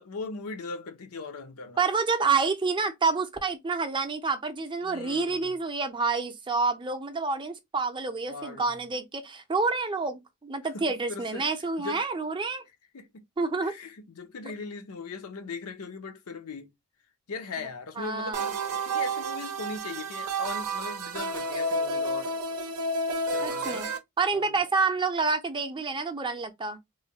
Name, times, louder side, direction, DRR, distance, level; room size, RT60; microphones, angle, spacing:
voice 1, 0.0-1.8 4.8-5.5 8.3-8.7 10.7-11.5 11.8-12.0 12.9-13.2 13.6-16.7 17.3-22.4 23.3-24.0 24.3-24.6, left 4 dB, 70° left, 0.6 m, -39 dB
voice 2, 1.8-12.6 13.4-13.7 18.0-18.5 23.4-23.9 24.2-26.8, right 4 dB, 20° right, 0.5 m, -28 dB
sound 1, 18.3-24.0, right 2 dB, 80° right, 0.6 m, -30 dB
3.1 x 2.2 x 2.7 m
head